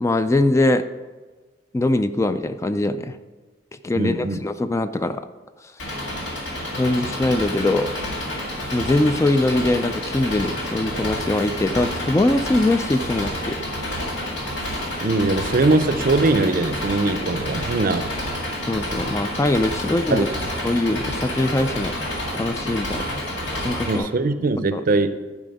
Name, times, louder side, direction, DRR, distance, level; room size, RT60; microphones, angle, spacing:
voice 1, 0.0-0.8 1.7-3.2 3.8-5.3 6.8-7.9 8.7-13.6 18.7-20.3 20.6-21.9 22.3-23.0 23.5-24.1 24.7-24.8, left 2 dB, 15° left, 10 dB, 0.3 m, -22 dB
voice 2, 3.9-4.4 15.0-18.1 20.1-20.3 23.9-25.2, right 2 dB, 50° right, 11 dB, 0.5 m, -21 dB
Engine, 5.8-24.0, left 1 dB, 80° left, 1.9 m, -29 dB
11.0 x 4.9 x 5.3 m, 1.3 s
head